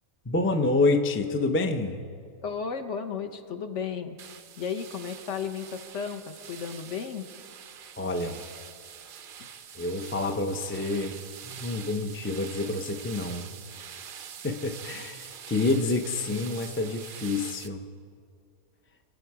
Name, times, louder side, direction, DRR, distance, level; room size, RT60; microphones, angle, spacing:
voice 1, 0.3-2.0 8.0-8.5 9.7-13.5 14.4-17.8, left 2 dB, 20° left, 5 dB, 0.3 m, -28 dB
voice 2, 2.4-4.2 4.6-7.3, left 6 dB, 60° left, 7 dB, 1.2 m, -34 dB
sound 1, 4.2-17.7, right 7 dB, 60° right, 0.5 m, -44 dB
25.5 x 9.2 x 4.8 m, 2.2 s
omnidirectional pair, 1.5 m